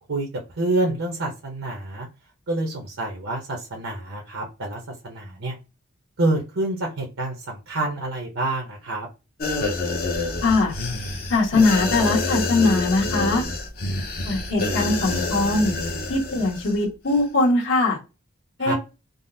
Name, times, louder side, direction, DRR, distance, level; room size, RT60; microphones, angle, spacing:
voice 1, 0.6-2.1 2.5-5.6 6.2-9.1 18.6-18.7, right 2 dB, 70° right, 1 dB, 0.7 m, -27 dB
sound 1, 9.4-16.8 17.1-17.2, left 2 dB, 45° left, 0.6 m, -27 dB
voice 2, 10.4-10.7 11.3-13.4 14.2-15.7 16.1-18.0 18.6-18.7, left 2 dB, 60° left, -4 dB, 1.4 m, -21 dB
3.7 x 2.0 x 2.6 m, 0.28 s
head